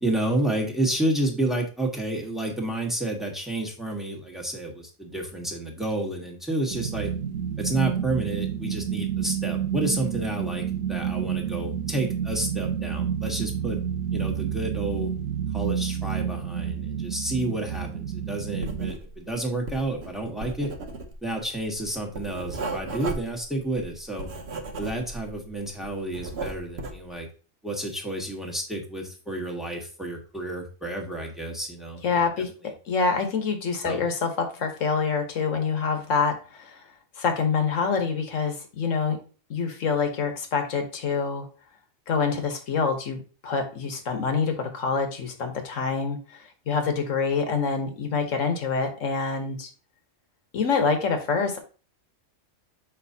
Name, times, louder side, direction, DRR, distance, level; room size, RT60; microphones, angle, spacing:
voice 1, 0.0-7.1 7.6-13.8 14.1-15.1 15.5-20.7 21.2-24.3 24.8-27.3 27.6-32.0 32.4-32.7 33.8-34.0, right 1 dB, ahead, 0 dB, 1.3 m, -30 dB
sound 1, 6.7-18.9, right 8 dB, 85° right, 1.2 m, -29 dB
Writing, 18.6-19.3 19.5-25.4 25.7-27.1, right 2 dB, 55° right, 1.1 m, -35 dB
voice 2, 32.0-32.5 32.9-36.8 37.2-39.2 39.5-41.5 42.1-49.7 50.5-51.6, left 5 dB, 70° left, 5 dB, 1.5 m, -26 dB
6.8 x 5.1 x 2.7 m, 0.36 s
omnidirectional pair, 1.4 m